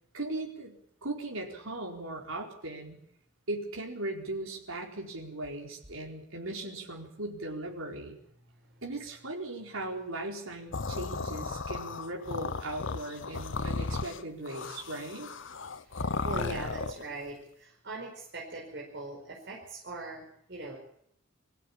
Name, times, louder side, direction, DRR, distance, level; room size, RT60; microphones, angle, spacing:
voice 1, 0.1-3.0 3.5-8.2 8.8-15.3, right 2 dB, 70° right, 0 dB, 4.4 m, -38 dB
voice 2, 8.5-8.8 16.0-20.8, right 2 dB, 50° right, -2 dB, 5.1 m, -41 dB
sound 1, 10.7-17.0, left 3 dB, 60° left, 0.9 m, -35 dB
23.0 x 16.0 x 8.8 m, 0.70 s
head